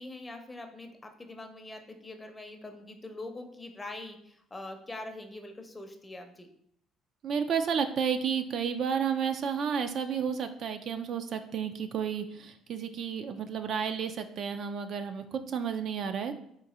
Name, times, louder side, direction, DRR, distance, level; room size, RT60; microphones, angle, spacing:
voice 1, 0.0-6.5, left 2 dB, 20° left, 5 dB, 0.6 m, -43 dB
voice 2, 7.2-16.4, right 7 dB, 55° right, 8 dB, 0.4 m, -31 dB
3.8 x 2.6 x 4.1 m, 0.70 s
cardioid pair, 95°, 0 cm